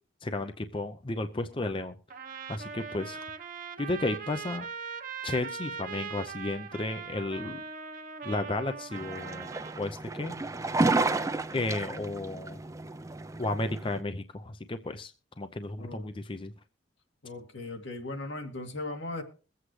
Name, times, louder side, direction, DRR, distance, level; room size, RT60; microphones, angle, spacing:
voice 1, 0.2-1.9 2.5-3.2 3.8-4.7 5.2-7.6 8.2-9.5 9.8-10.4 11.5-12.6 13.4-15.1 15.4-16.5, left 2 dB, 30° left, 9 dB, 0.6 m, -33 dB
Trumpet, 2.1-9.8, right 6 dB, 45° right, 1.1 m, -40 dB
sound 1, 8.9-14.0, right 2 dB, 15° right, 0.6 m, -31 dB
voice 2, 15.8-16.1 17.2-19.2, left 2 dB, 80° left, 3 dB, 2.4 m, -38 dB
22.5 x 8.0 x 3.2 m, 0.35 s
head